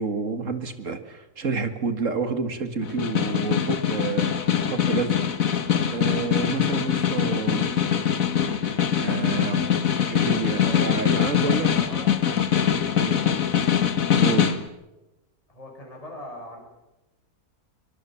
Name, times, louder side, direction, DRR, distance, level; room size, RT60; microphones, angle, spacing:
voice 1, 0.0-5.1 5.9-7.7 8.6-9.7 10.1-11.7 13.0-13.2 14.2-14.6, right 4 dB, 55° right, 9 dB, 2.2 m, -29 dB
Snare drum, 2.8-14.7, left 8 dB, 60° left, 1.7 m, -23 dB
voice 2, 11.4-12.1 15.5-16.6, left 1 dB, 20° left, -1 dB, 5.3 m, -40 dB
24.0 x 22.5 x 7.1 m, 0.98 s
omnidirectional pair, 1.6 m